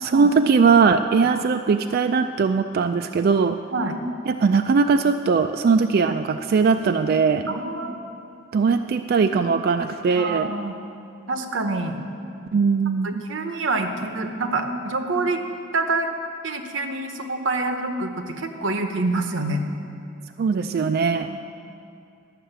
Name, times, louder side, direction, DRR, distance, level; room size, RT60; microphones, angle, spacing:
voice 1, 0.0-3.6 4.3-7.5 8.5-10.5 12.5-13.2 20.4-21.3, right 5 dB, 50° right, 8 dB, 0.3 m, -20 dB
voice 2, 7.5-8.0 10.0-10.7 11.3-12.0 13.0-15.4 15.7-16.1 16.4-19.7 21.3-21.4, right 2 dB, 80° right, 6 dB, 1.0 m, -26 dB
11.5 x 6.5 x 8.0 m, 2.6 s
head